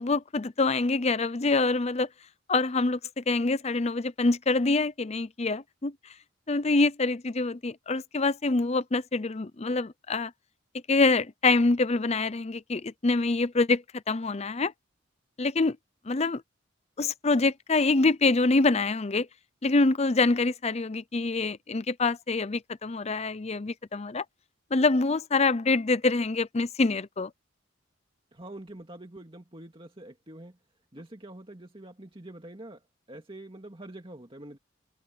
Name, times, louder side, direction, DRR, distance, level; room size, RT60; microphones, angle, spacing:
voice 1, 0.0-2.1 2.5-5.9 6.5-10.3 10.9-14.7 15.4-15.8 16.1-16.4 17.0-19.3 19.6-24.2 24.7-27.3, left 3 dB, 35° left, 0.6 m, -25 dB
voice 2, 28.3-30.6 30.9-34.6, right 1 dB, 25° right, 2.2 m, -45 dB
head